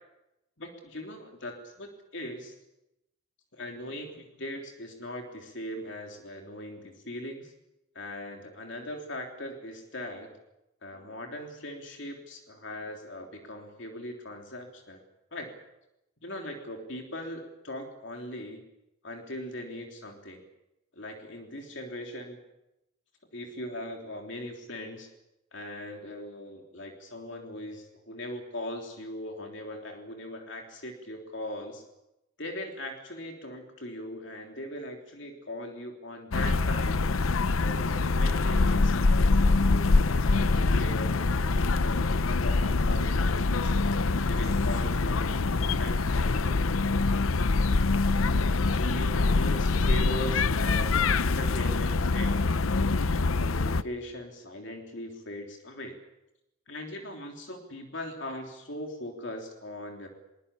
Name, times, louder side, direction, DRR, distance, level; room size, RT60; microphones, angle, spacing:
voice 1, 0.6-2.5 3.5-7.5 7.9-10.3 10.8-15.0 15.3-15.5 16.2-18.6 19.0-20.4 20.9-22.4 23.3-25.1 25.5-31.8 32.4-43.7 44.1-46.7 48.7-52.5 52.9-56.0 56.7-60.1, left 1 dB, 60° left, 2 dB, 3.4 m, -40 dB
sound 1, 36.3-53.8, left 3 dB, 80° left, 0.7 m, -25 dB
23.0 x 20.0 x 8.5 m, 0.92 s
head